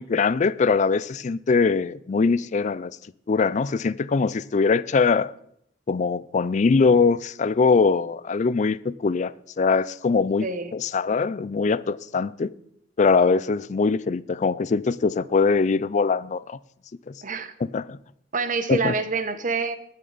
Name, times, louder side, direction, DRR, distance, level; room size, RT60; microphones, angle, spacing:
voice 1, 0.0-2.9 3.3-5.3 5.9-10.5 10.7-12.5 13.0-16.6 17.1-17.2 17.6-18.0 18.7-18.9, left 4 dB, 40° left, 0.4 m, -22 dB
voice 2, 10.4-10.7 17.2-17.5 18.3-19.8, right 4 dB, 45° right, 0.9 m, -26 dB
19.5 x 6.6 x 4.0 m
head